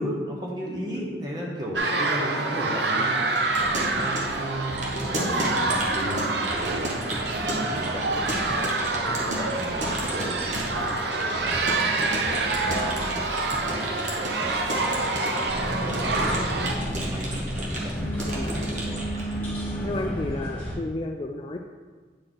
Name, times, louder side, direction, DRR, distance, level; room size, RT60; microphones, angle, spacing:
voice 1, 0.0-3.6 3.9-6.9 7.2-12.1 12.9-17.9, equal, 25° right, -3 dB, 1.2 m, -35 dB
sound 1, 1.7-16.7, right 3 dB, 75° right, 0.7 m, -27 dB
Keyboard (musical) / Computer keyboard, 3.3-19.4, right 1 dB, 40° right, 1.2 m, -33 dB
sound 2, 15.4-20.7, equal, 10° left, 1.9 m, -31 dB
voice 2, 18.3-18.6 19.8-21.6, left 2 dB, 30° left, 3 dB, 0.3 m, -32 dB
8.7 x 4.4 x 3.9 m, 1.4 s
head